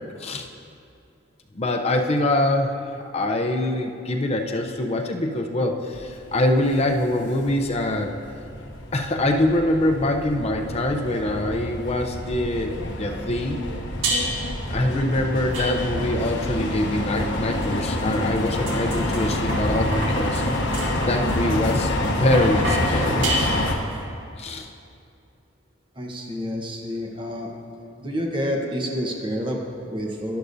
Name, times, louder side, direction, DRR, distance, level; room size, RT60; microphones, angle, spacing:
voice 1, 1.5-8.1 8.9-13.6 14.7-20.4 21.0-23.3 24.4-24.7, left 1 dB, 35° left, 3 dB, 0.6 m, -24 dB
sound 1, 5.9-23.8, left 1 dB, 65° left, 1.0 m, -27 dB
sound 2, 14.0-14.6 15.5-16.2 17.2-24.0, right 1 dB, 85° right, 1.7 m, -31 dB
voice 2, 26.0-27.5 28.0-30.4, equal, 25° right, 0 dB, 1.0 m, -28 dB
11.5 x 11.5 x 2.7 m, 2.5 s
head